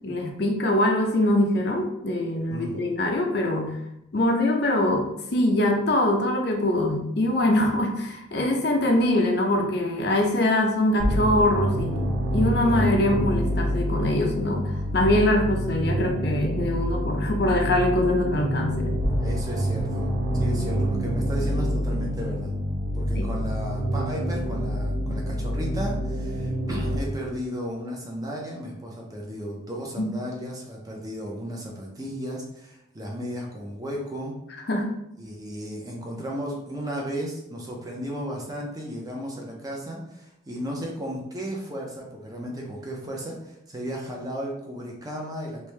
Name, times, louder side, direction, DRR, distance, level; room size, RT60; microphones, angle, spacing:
voice 1, 0.0-3.8 4.1-12.1 12.3-19.0 20.7-20.8 23.2-23.3 30.0-30.1 34.7-34.9, left 1 dB, 55° left, 2 dB, 0.6 m, -23 dB
voice 2, 2.5-2.8 19.2-22.6 22.9-34.3 35.2-45.7, equal, 20° right, -1 dB, 0.5 m, -34 dB
sound 1, 11.0-27.0, equal, 60° right, 0.7 m, -27 dB
3.2 x 2.6 x 3.2 m, 0.81 s
head